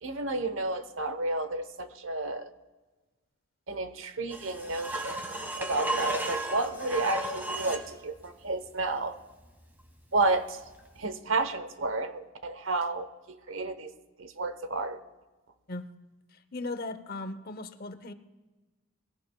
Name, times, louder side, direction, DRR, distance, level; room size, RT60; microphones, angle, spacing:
voice 1, 0.0-2.5 3.7-5.2 5.6-9.2 10.1-10.6 11.0-13.9 14.2-15.0, right 2 dB, 75° right, 1.0 m, -31 dB
sound 1, 4.3-7.9 10.8-10.9, right 1 dB, 10° right, 1.8 m, -34 dB
voice 2, 16.5-18.1, left 2 dB, 50° left, 0.8 m, -37 dB
21.5 x 17.0 x 2.3 m
head